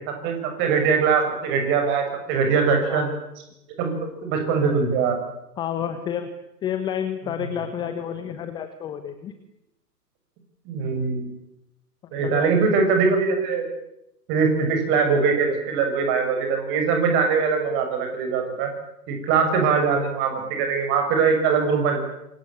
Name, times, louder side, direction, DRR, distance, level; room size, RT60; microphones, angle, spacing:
voice 1, 0.2-3.1 3.8-5.2 10.6-11.3 12.1-13.7 14.3-18.7 19.1-22.0, right 5 dB, 25° right, 4 dB, 6.6 m, -22 dB
voice 2, 5.6-6.3 6.6-9.3 12.1-12.5, left 9 dB, 10° left, 9 dB, 1.1 m, -29 dB
27.0 x 24.5 x 8.7 m, 0.87 s
figure-of-eight pair, 130°, 48 cm